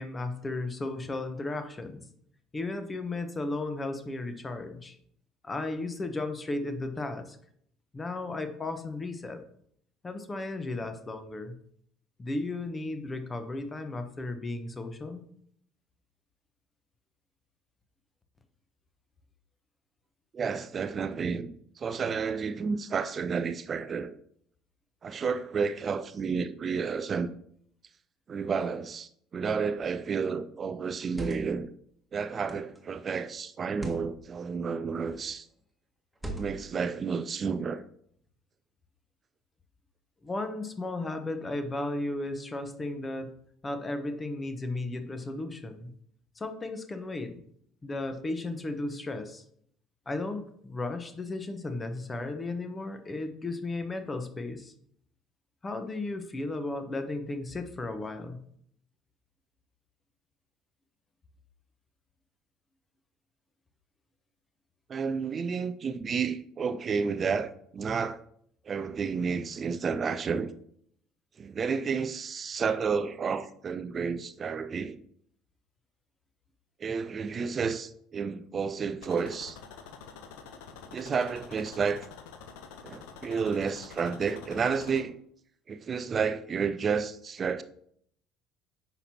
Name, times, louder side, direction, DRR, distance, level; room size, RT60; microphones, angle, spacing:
voice 1, 0.0-2.0 2.5-5.0 5.4-7.4 7.9-9.4 10.0-11.6 12.2-15.2 40.2-43.3 43.6-45.9 46.4-47.3 47.8-49.4 50.1-54.7 55.6-58.4, left 2 dB, 25° left, 1.1 m, -35 dB
voice 2, 20.3-24.1 25.0-27.3 28.3-31.7 32.1-35.5 36.3-37.8 64.9-68.2 68.6-70.5 71.4-75.0 76.8-79.6 80.9-82.1 82.8-85.2 85.7-87.6, right 5 dB, 35° right, 0.4 m, -31 dB
sound 1, 29.8-30.1 30.9-31.6 32.5-32.8 33.7-34.1 35.0-35.3 36.1-36.8, right 1 dB, 5° right, 1.6 m, -41 dB
sound 2, 79.0-85.0, left 6 dB, 65° left, 0.8 m, -47 dB
9.6 x 6.0 x 2.9 m
figure-of-eight pair, 60°, 0 cm